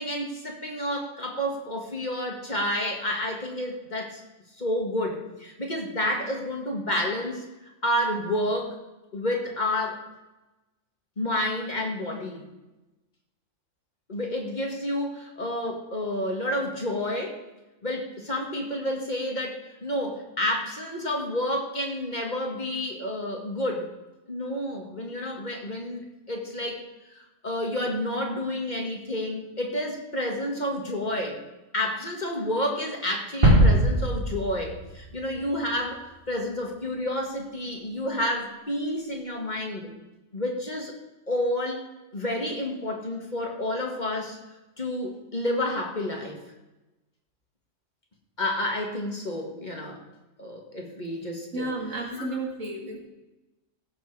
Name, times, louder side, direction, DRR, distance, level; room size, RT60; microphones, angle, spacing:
voice 1, 0.0-4.2 4.6-8.8 9.1-10.0 11.2-12.4 14.1-17.4 17.8-23.9 24.3-31.4 31.7-39.9 40.3-40.9 41.3-41.8 42.1-44.4 44.8-46.4 48.4-50.0 50.4-52.4, left 1 dB, 35° left, 1 dB, 1.9 m, -30 dB
sound 1, 33.4-35.4 35.7-35.9, right 1 dB, 40° right, 2.6 m, -21 dB
voice 2, 51.5-53.0, right 2 dB, 70° right, 1 dB, 2.5 m, -32 dB
16.0 x 7.3 x 4.7 m, 1.0 s
omnidirectional pair, 1.4 m